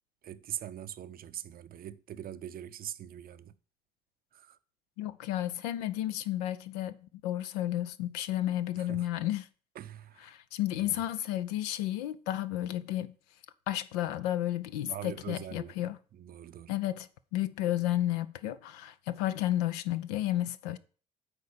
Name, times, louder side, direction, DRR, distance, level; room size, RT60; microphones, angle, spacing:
voice 1, 0.2-3.6 4.3-4.6 8.8-9.1 9.7-10.3 10.8-11.1 14.8-15.8 16.1-16.8, right 11 dB, 50° right, 0.6 m, -43 dB
voice 2, 5.0-7.0 7.2-9.5 10.3-13.1 13.7-16.0 16.7-17.1 17.3-20.8, left 13 dB, 80° left, 0.5 m, -32 dB
8.1 x 4.3 x 6.7 m
hypercardioid pair, 50°, 20 cm